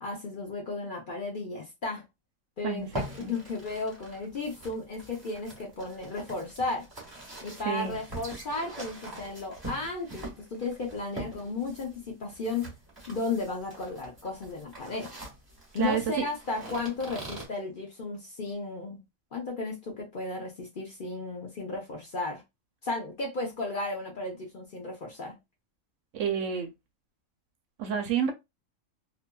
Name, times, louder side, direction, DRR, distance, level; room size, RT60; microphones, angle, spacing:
voice 1, 0.0-2.0 2.6-6.9 7.4-12.7 13.1-15.1 15.7-19.0 19.3-22.4 22.8-25.3, left 3 dB, 50° left, 0.7 m, -34 dB
sound 1, 2.8-17.5, right 1 dB, 15° right, 1.3 m, -43 dB
voice 2, 7.7-8.0 15.8-16.0 26.1-26.7 27.8-28.3, right 7 dB, 70° right, 0.9 m, -29 dB
2.7 x 2.4 x 2.2 m
omnidirectional pair, 1.4 m